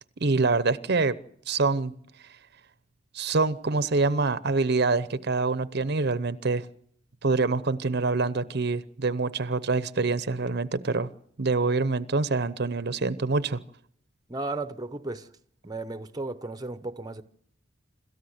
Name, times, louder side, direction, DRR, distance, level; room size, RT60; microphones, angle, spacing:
voice 1, 0.2-1.2 1.5-1.9 3.1-6.6 7.2-11.1 11.4-13.6, right 3 dB, 55° right, 0.8 m, -25 dB
voice 2, 14.3-15.3 15.6-17.2, right 2 dB, 20° right, 0.8 m, -34 dB
27.0 x 14.0 x 8.0 m
head